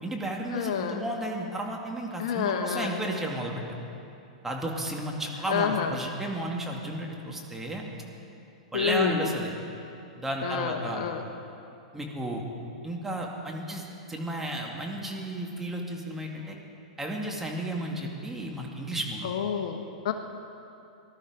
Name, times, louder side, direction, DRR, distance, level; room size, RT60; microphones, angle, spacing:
voice 1, 0.0-3.8 4.4-7.8 8.7-9.5 10.2-11.1 11.9-12.4 12.8-16.6 17.0-19.3, right 1 dB, 10° right, -1 dB, 2.3 m, -33 dB
voice 2, 0.5-1.0 2.2-3.0 5.5-5.9 8.7-9.3 10.4-11.2 19.2-20.1, left 8 dB, 60° left, 6 dB, 1.1 m, -29 dB
19.0 x 12.0 x 5.1 m, 2.8 s
hypercardioid pair, 110°, 4 cm